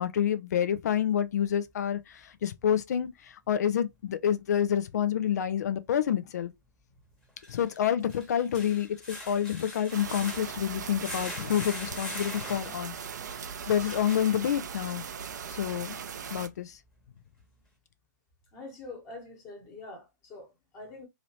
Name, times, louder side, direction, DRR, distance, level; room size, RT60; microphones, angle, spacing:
voice 1, 0.0-6.5 7.5-12.9 13.7-15.0 15.5-16.0 16.3-16.8, left 9 dB, 60° left, 0.5 m, -28 dB
sound 1, 4.7-4.8 7.2-14.9 15.4-15.5 16.0-16.1, left 1 dB, 5° left, 1.2 m, -43 dB
sound 2, 9.9-16.5, right 7 dB, 65° right, 0.6 m, -39 dB
voice 2, 18.5-21.0, left 2 dB, 25° left, 1.4 m, -45 dB
2.9 x 2.8 x 3.0 m
figure-of-eight pair, 125°, 10 cm